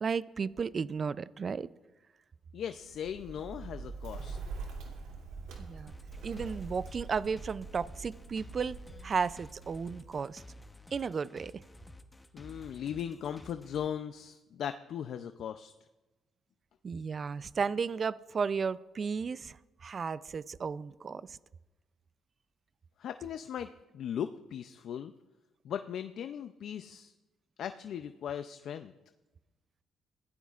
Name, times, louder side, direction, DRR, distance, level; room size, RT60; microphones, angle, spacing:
voice 1, 0.0-1.7 5.6-5.9 6.2-8.8 9.0-10.4 10.9-11.6 16.8-19.6 19.8-21.4, right 5 dB, 45° right, 16 dB, 0.4 m, -34 dB
voice 2, 2.5-4.4 12.3-15.7 23.0-23.7 23.9-25.1 25.6-27.1 27.6-28.9, left 9 dB, 70° left, 9 dB, 0.5 m, -38 dB
Bird, 2.7-10.5, right 4 dB, 90° right, 2.7 m, -45 dB
sound 1, 5.9-13.9, left 1 dB, 15° left, 0.9 m, -52 dB
23.0 x 15.5 x 2.5 m, 1.1 s
cardioid pair, 90°, 0 cm